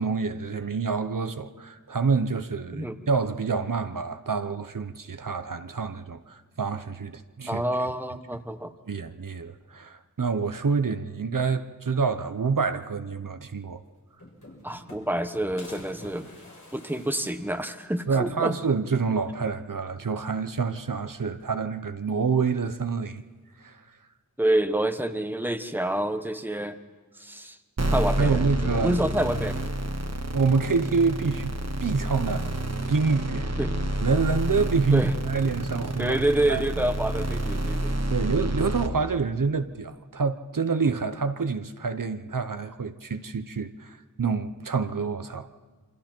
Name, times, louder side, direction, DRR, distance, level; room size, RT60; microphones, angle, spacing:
voice 1, 0.0-7.6 8.9-13.8 18.1-23.2 23.6-23.8 28.2-29.0 30.3-31.5 31.8-32.5 32.9-33.5 34.0-36.2 36.5-36.6 38.1-45.5, right 5 dB, 70° right, 0.9 m, -27 dB
voice 2, 7.5-8.7 14.6-16.3 16.7-18.6 24.4-26.8 27.2-27.6 27.9-29.5 33.6-33.7 34.9-35.1 36.0-37.9, right 1 dB, 5° right, 1.2 m, -27 dB
sound 1, 13.6-13.7 13.9-15.3 15.6-18.2 18.6-18.7 18.9-19.0 20.2-20.7 21.0-21.8 22.8-23.4, left 1 dB, 65° left, 6.5 m, -49 dB
sound 2, 27.8-38.9, right 1 dB, 50° right, 1.5 m, -29 dB
28.5 x 25.0 x 4.5 m
wide cardioid pair, 50°, 34 cm